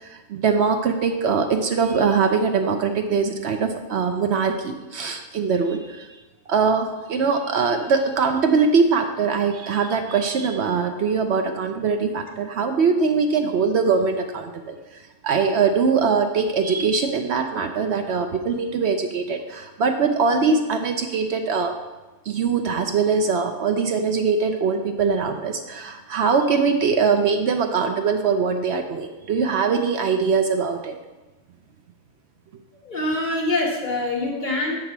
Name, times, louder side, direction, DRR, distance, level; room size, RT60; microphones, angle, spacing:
voice 1, 0.0-6.1 6.5-14.8 15.2-21.7 22.3-31.0, right 5 dB, 60° right, 6 dB, 0.7 m, -22 dB
voice 2, 32.7-34.8, left 2 dB, 35° left, -3 dB, 1.5 m, -25 dB
7.1 x 4.8 x 5.9 m, 1.1 s
omnidirectional pair, 1.5 m